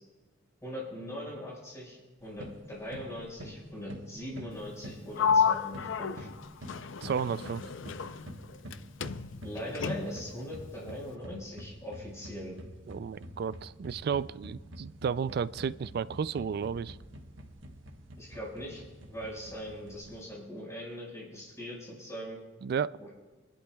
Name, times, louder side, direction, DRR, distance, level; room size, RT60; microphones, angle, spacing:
voice 1, 0.6-6.3 9.4-12.6 18.2-18.8 19.1-22.4 23.0-23.1, equal, 15° left, -5 dB, 5.1 m, -41 dB
sound 1, 2.2-20.2, equal, 75° right, 1.3 m, -47 dB
Sliding door, 5.2-8.8 9.0-10.3, left 6 dB, 75° left, 0.5 m, -31 dB
voice 2, 7.0-7.7 12.9-17.0 22.6-22.9, right 6 dB, 55° right, 17 dB, 0.3 m, -32 dB
27.0 x 11.5 x 2.3 m, 1.3 s
head